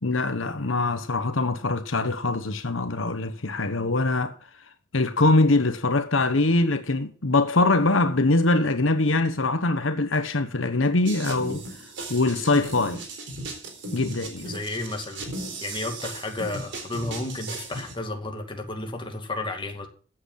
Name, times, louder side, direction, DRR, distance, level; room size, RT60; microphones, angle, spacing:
voice 1, 0.0-4.3 4.9-11.6 12.1-13.0 13.9-14.5, left 2 dB, 80° left, 1.2 m, -23 dB
sound 1, 11.0-17.9, right 2 dB, 65° right, 4.1 m, -37 dB
voice 2, 14.4-15.3 15.6-19.9, left 2 dB, 25° left, 2.3 m, -32 dB
15.0 x 8.0 x 5.8 m
head